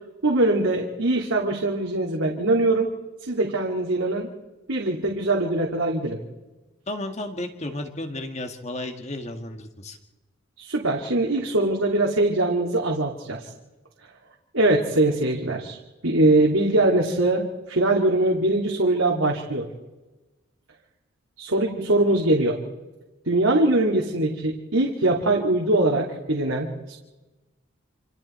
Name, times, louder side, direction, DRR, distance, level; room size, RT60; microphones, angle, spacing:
voice 1, 0.2-2.9 3.2-4.3 4.7-6.2 10.6-13.5 14.5-15.8 16.0-19.7 21.4-22.6 23.3-27.0, right 2 dB, 80° right, -1 dB, 2.6 m, -22 dB
voice 2, 6.9-10.0, left 1 dB, 30° left, 6 dB, 1.8 m, -33 dB
28.0 x 27.0 x 4.4 m, 1.1 s
head